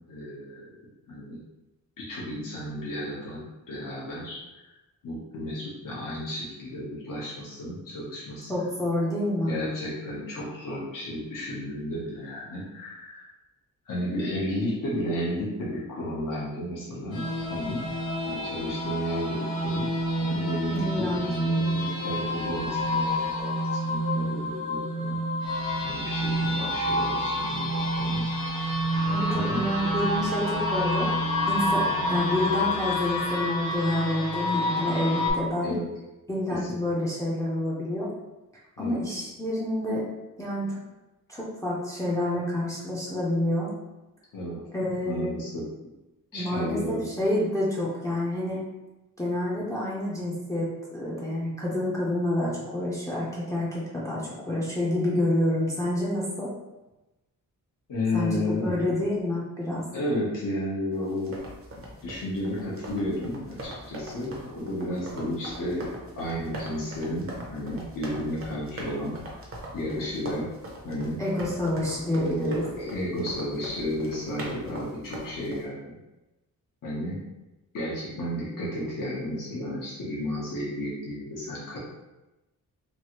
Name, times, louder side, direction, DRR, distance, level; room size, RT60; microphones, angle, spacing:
voice 1, 0.1-0.7 1.1-1.4 2.0-4.4 5.0-8.5 9.5-13.3 13.9-17.8 18.2-19.9 20.2-23.6 23.9-25.2 25.8-28.2 29.3-29.7 35.6-35.8 36.5-36.8 38.8-39.0 44.3-44.6 45.0-45.6 46.3-47.0 57.9-59.0 59.9-61.3 61.8-69.4 69.7-70.5 70.8-71.2 72.1-76.0 76.8-77.2 77.7-81.8, left 1 dB, 65° left, -7 dB, 0.9 m, -33 dB
voice 2, 8.5-9.5 20.7-21.2 21.5-21.6 29.1-31.1 31.5-35.8 36.3-38.1 38.8-40.1 40.4-40.8 41.3-43.7 44.7-45.3 46.3-48.6 49.2-56.5 58.1-59.8 71.2-72.6, left 1 dB, 10° left, -6 dB, 0.5 m, -28 dB
sound 1, 17.1-35.3, equal, 85° left, 1.0 m, -28 dB
sound 2, 61.1-75.6, right 1 dB, 40° right, 0.7 m, -41 dB
3.1 x 2.5 x 2.9 m, 1.0 s
wide cardioid pair, 145°, 35 cm